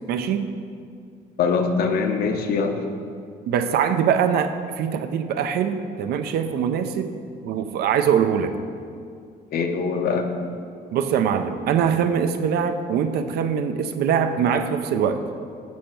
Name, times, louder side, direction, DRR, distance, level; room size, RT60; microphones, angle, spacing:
voice 1, 0.1-0.5 3.5-7.1 7.4-8.6 10.9-15.2, right 7 dB, 70° right, 8 dB, 0.5 m, -23 dB
voice 2, 1.4-2.8 9.5-10.3, left 5 dB, 65° left, 5 dB, 0.8 m, -23 dB
7.1 x 6.3 x 4.4 m, 2.3 s
cardioid pair, 110°, 17 cm